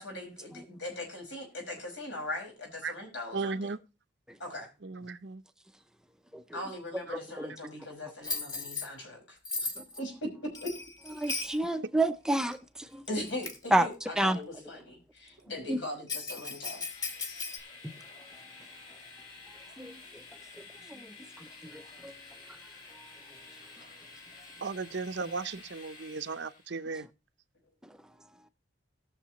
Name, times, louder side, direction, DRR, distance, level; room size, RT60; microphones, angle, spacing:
voice 1, 0.0-3.7 4.4-4.7 6.5-9.7 10.0-10.3 10.6-10.7 11.3-11.4 13.1-16.8, left 1 dB, 85° left, 5.5 m, -40 dB
voice 2, 3.3-3.8 4.8-5.4 7.1-7.2 24.6-27.1, right 4 dB, 70° right, 0.7 m, -36 dB
Bell, 8.2-8.9 9.5-10.0 10.5-11.6 12.5-12.6 13.2-13.7 16.1-17.6, left 3 dB, 20° left, 1.3 m, -36 dB
voice 3, 11.2-12.6 12.9-13.0 13.7-13.9 14.2-14.4 15.7-15.8 17.8-17.9 19.8-19.9 20.9-21.1 21.7-22.1, right 1 dB, 5° right, 0.5 m, -28 dB
Train, 16.3-26.7, left 3 dB, 50° left, 5.0 m, -51 dB
19.0 x 6.6 x 3.0 m
head